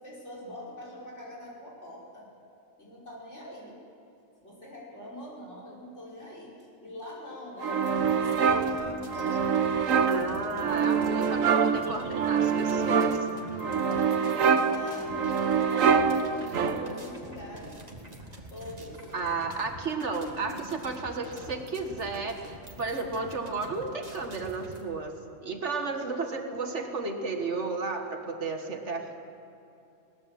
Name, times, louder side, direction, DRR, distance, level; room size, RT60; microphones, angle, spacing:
voice 1, 0.0-2.3 2.8-3.8 4.4-9.4 10.1-11.3 13.7-17.7 18.5-19.1, left 1 dB, 60° left, -4 dB, 6.0 m, -44 dB
sound 1, 7.6-17.1, right 6 dB, 90° right, 1.4 m, -25 dB
sound 2, 7.8-24.8, right 1 dB, 30° right, 2.3 m, -46 dB
voice 2, 10.1-13.2 19.1-29.3, right 3 dB, 60° right, 4 dB, 1.9 m, -33 dB
21.0 x 19.0 x 7.6 m, 2.8 s
omnidirectional pair, 1.3 m